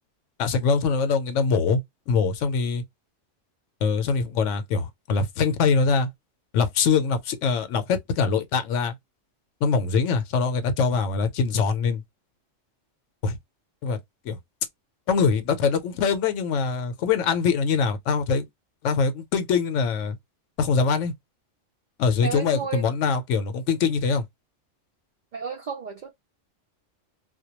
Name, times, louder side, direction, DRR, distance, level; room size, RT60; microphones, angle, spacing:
voice 1, 0.4-1.8 2.1-2.8 3.8-6.1 6.5-8.9 9.6-12.0 13.2-13.4 13.8-14.0 14.2-14.4 15.1-18.5 18.8-20.2 20.6-21.1 22.0-24.2, left 5 dB, 75° left, 0.9 m, -23 dB
voice 2, 22.2-22.8 25.3-26.1, right 5 dB, 70° right, 0.4 m, -32 dB
2.2 x 2.2 x 2.8 m
omnidirectional pair, 1.3 m